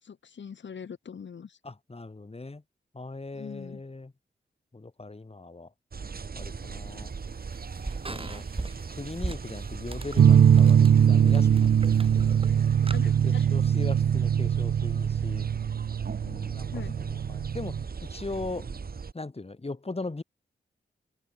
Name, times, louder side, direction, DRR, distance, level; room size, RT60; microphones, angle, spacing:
voice 1, 0.0-1.6 3.3-3.8 12.0-12.2 12.9-13.4 16.7-17.0, left 7 dB, 75° left, 4.8 m, -42 dB
voice 2, 1.6-2.6 2.9-4.1 4.7-5.7 6.4-7.1 8.1-8.5 8.9-12.4 13.2-15.5 16.2-16.7 17.0-17.8 18.1-18.7 19.1-20.2, left 3 dB, 30° left, 4.9 m, -39 dB
sound 1, 5.9-19.1, right 5 dB, 55° right, 1.7 m, -38 dB
sound 2, 6.4-13.0, right 2 dB, 30° right, 3.1 m, -40 dB
sound 3, 10.2-17.8, right 8 dB, 85° right, 1.2 m, -22 dB
cardioid pair, 55°, 19 cm